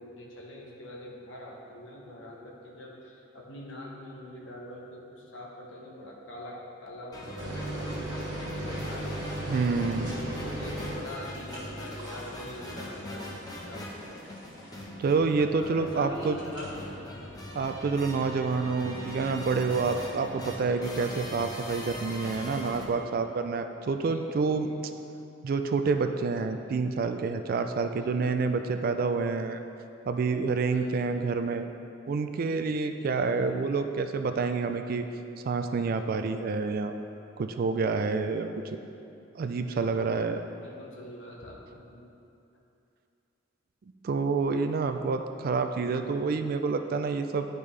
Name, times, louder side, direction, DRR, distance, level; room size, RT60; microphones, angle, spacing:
voice 1, 0.0-9.1 9.9-14.2 15.6-17.4 18.8-19.2 20.1-20.7 23.9-24.8 27.9-28.9 30.7-31.2 32.9-33.5 39.6-40.1 40.6-42.1, left 1 dB, 75° left, -2 dB, 1.1 m, -44 dB
sound 1, 7.1-22.8, left 1 dB, 20° left, 0.9 m, -41 dB
sound 2, 7.4-15.0 16.4-16.7, right 1 dB, 25° right, 1.7 m, -38 dB
voice 2, 9.4-10.1 15.0-16.4 17.5-24.7 25.4-29.6 30.1-31.7 32.1-35.1 35.4-37.0 37.4-38.8 39.4-40.4 44.0-47.5, right 4 dB, 50° right, 7 dB, 0.3 m, -28 dB
9.9 x 5.3 x 3.2 m, 2.7 s
head